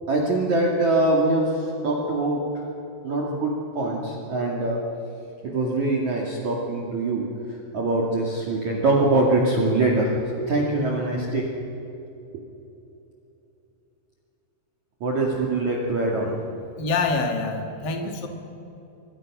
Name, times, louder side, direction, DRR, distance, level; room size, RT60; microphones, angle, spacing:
voice 1, 0.1-2.7 3.0-4.8 5.4-11.5 15.0-16.5, right 2 dB, 45° right, -2 dB, 3.0 m, -23 dB
voice 2, 16.8-18.3, left 3 dB, 45° left, 3 dB, 1.4 m, -26 dB
28.5 x 23.5 x 6.2 m, 2.9 s
omnidirectional pair, 5.6 m